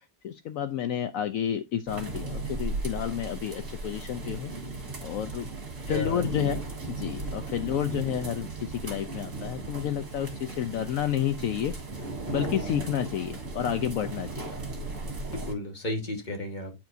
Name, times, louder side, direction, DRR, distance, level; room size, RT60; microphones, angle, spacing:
voice 1, 0.2-4.5 5.0-5.5 5.8-6.6 6.9-11.7 12.3-14.6, left 10 dB, 70° left, 0.9 m, -30 dB
sound 1, 1.9-15.5, right 3 dB, 55° right, 2.1 m, -36 dB
voice 2, 5.9-6.6 15.3-16.7, left 2 dB, 30° left, 1.7 m, -33 dB
9.4 x 4.4 x 2.6 m
omnidirectional pair, 1.6 m